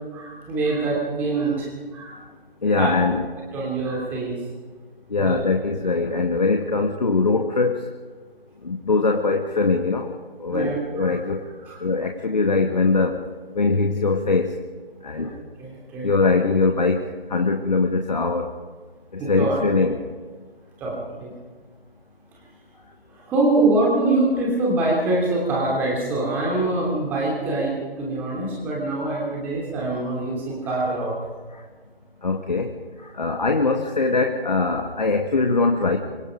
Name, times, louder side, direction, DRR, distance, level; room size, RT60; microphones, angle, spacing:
voice 1, 0.1-1.7 1.9-2.1 2.8-2.9 3.5-4.4 5.2-5.4 10.5-11.2 11.6-11.8 15.1-16.1 19.2-19.6 20.8-21.3 23.3-31.1, right 2 dB, 5° right, -3 dB, 2.9 m, -24 dB
voice 2, 2.6-3.3 5.1-7.9 8.6-11.4 11.8-13.2 13.6-14.6 15.0-15.3 16.0-18.5 19.1-20.0 31.5-31.6 32.2-32.7 33.0-36.0, left 3 dB, 45° left, 4 dB, 1.8 m, -22 dB
25.5 x 20.5 x 5.1 m, 1.5 s
figure-of-eight pair, 155°, 30 cm